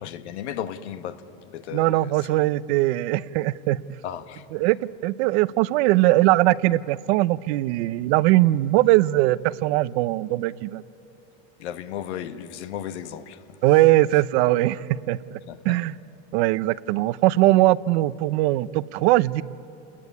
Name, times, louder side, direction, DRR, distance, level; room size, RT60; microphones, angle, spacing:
voice 1, 0.0-1.2 1.5-2.4 4.0-4.4 11.6-13.6 15.5-15.8, left 10 dB, 90° left, 1.5 m, -35 dB
voice 2, 1.7-3.8 4.5-4.8 5.0-10.8 13.6-15.4 15.6-15.9 16.3-19.4, right 17 dB, 70° right, 0.7 m, -20 dB
28.5 x 20.5 x 9.7 m
supercardioid pair, 125°, 33 cm